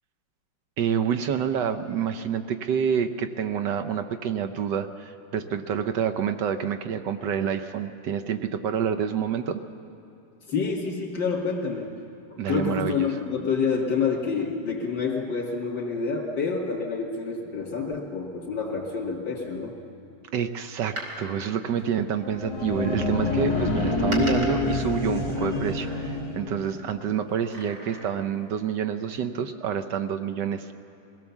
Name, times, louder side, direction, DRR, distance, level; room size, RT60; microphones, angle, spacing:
voice 1, 0.8-9.6 12.4-13.1 14.3-14.4 20.3-30.7, right 8 dB, 70° right, 8 dB, 1.3 m, -28 dB
voice 2, 10.5-11.9 12.5-19.7, left 5 dB, 80° left, -3 dB, 2.9 m, -28 dB
Door, 20.7-22.6 23.5-26.4 27.3-28.4 28.8-28.9, right 1 dB, 50° right, 3.3 m, -40 dB
sound 1, 22.2-26.8, left 3 dB, 15° left, 2.3 m, -27 dB
23.0 x 17.0 x 7.1 m, 2.8 s
omnidirectional pair, 2.0 m